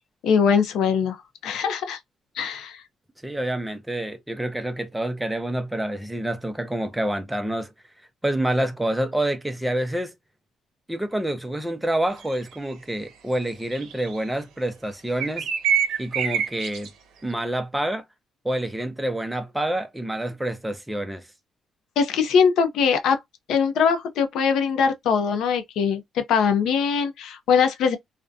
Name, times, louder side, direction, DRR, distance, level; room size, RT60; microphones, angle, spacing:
voice 1, 0.2-1.2 1.4-2.0 2.4-2.8 22.0-23.2 23.5-28.0, left 6 dB, 75° left, 0.5 m, -21 dB
voice 2, 3.2-7.7 8.2-10.1 10.9-15.5 16.0-16.9 17.2-18.0 18.4-21.3, right 1 dB, 5° right, 0.5 m, -27 dB
sound 1, 12.3-12.4 13.7-14.1 15.2-16.9, right 8 dB, 85° right, 0.6 m, -25 dB
2.5 x 2.1 x 2.5 m
cardioid pair, 115°, 0 cm